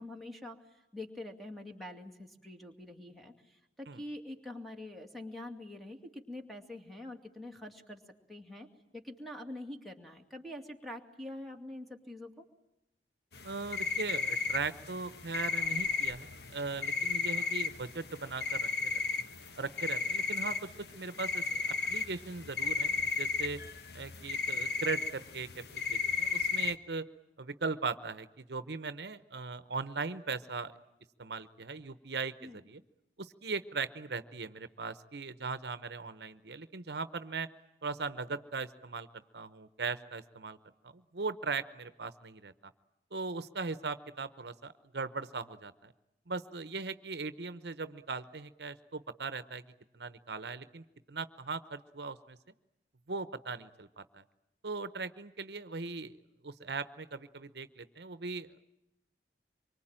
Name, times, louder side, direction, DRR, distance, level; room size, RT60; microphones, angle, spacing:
voice 1, 0.0-8.0 8.3-8.7 8.9-12.4 32.4-32.6, left 1 dB, ahead, 4 dB, 2.4 m, -45 dB
sound 1, 13.3-26.7, left 5 dB, 65° left, 1.4 m, -34 dB
voice 2, 13.4-19.2 19.6-23.6 23.9-27.1 27.4-30.7 31.2-32.8 33.2-37.5 37.8-39.1 39.3-40.6 40.9-42.5 43.1-45.9 46.3-49.6 49.9-52.4 53.1-54.2 54.6-56.2 56.4-58.6, right 4 dB, 70° right, 13 dB, 0.9 m, -39 dB
25.5 x 24.0 x 8.9 m, 0.89 s
head